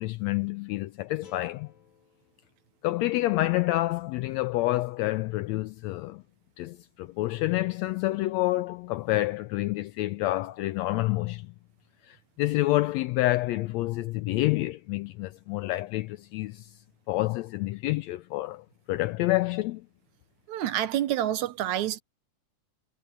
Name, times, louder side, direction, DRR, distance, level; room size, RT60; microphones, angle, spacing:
voice 1, 0.0-1.7 2.8-6.2 6.6-11.5 12.1-16.7 17.1-19.8, left 18 dB, 80° left, 1.6 m, -28 dB
sound 1, 1.2-4.3, left 6 dB, 65° left, 3.4 m, -57 dB
voice 2, 20.5-22.0, right 12 dB, 75° right, 2.2 m, -28 dB
omnidirectional pair, 3.5 m